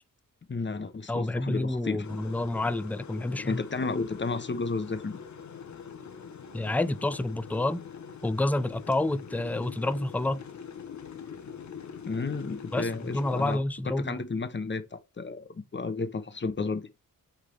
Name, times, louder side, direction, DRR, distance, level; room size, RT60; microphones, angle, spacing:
voice 1, 0.5-2.1 3.4-5.2 12.1-16.9, left 4 dB, 35° left, 1.0 m, -32 dB
voice 2, 1.1-3.6 6.5-7.8 8.2-10.4 12.7-14.2, left 2 dB, 5° left, 0.4 m, -29 dB
sound 1, 2.0-13.6, left 7 dB, 55° left, 1.0 m, -43 dB
7.9 x 3.7 x 3.3 m
wide cardioid pair, 115°, 34 cm